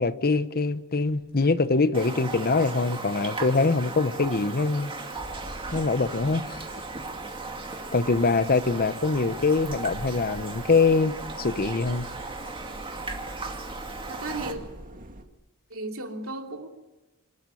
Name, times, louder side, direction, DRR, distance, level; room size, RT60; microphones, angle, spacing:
voice 1, 0.0-4.9 5.7-6.6 7.9-12.1, left 3 dB, 45° left, 0.9 m, -24 dB
sound 1, 1.1-15.2, right 1 dB, 40° right, 2.1 m, -46 dB
Raindrop, 1.9-14.5, right 3 dB, 25° right, 2.4 m, -37 dB
voice 2, 14.1-14.6 15.7-16.7, right 2 dB, 65° right, 3.0 m, -35 dB
26.0 x 13.0 x 9.8 m
head